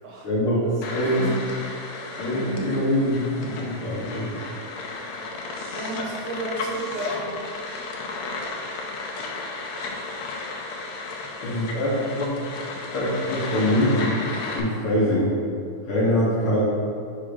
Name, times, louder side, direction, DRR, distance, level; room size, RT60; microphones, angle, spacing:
voice 1, 0.2-0.6 0.9-1.4 2.1-4.3 11.4-12.4 12.9-14.2 14.5-15.3 15.9-16.6, left 1 dB, 55° left, -8 dB, 1.7 m, -23 dB
sound 1, 0.8-14.6, left 3 dB, 75° left, 1.8 m, -33 dB
voice 2, 5.7-7.3, right 2 dB, 70° right, -3 dB, 1.8 m, -32 dB
6.2 x 3.7 x 5.0 m, 2.3 s
omnidirectional pair, 3.4 m